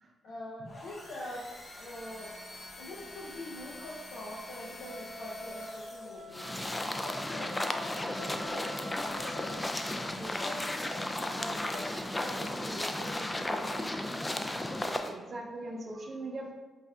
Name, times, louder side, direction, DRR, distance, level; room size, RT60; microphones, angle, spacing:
voice 1, 0.2-2.3 2.8-11.9 12.2-13.9, left 1 dB, 80° left, -6 dB, 0.5 m, -44 dB
sound 1, 0.6-6.5, left 1 dB, 40° left, 1.0 m, -48 dB
Wind instrument woodwind instrument, 4.8-9.8, left 1 dB, 80° right, 0.8 m, -46 dB
sound 2, 6.3-15.1, left 1 dB, 20° left, 0.3 m, -34 dB
voice 2, 15.0-16.5, right 2 dB, 50° right, 1 dB, 0.7 m, -40 dB
5.2 x 2.5 x 2.3 m, 1.2 s
supercardioid pair, 60°, 0 cm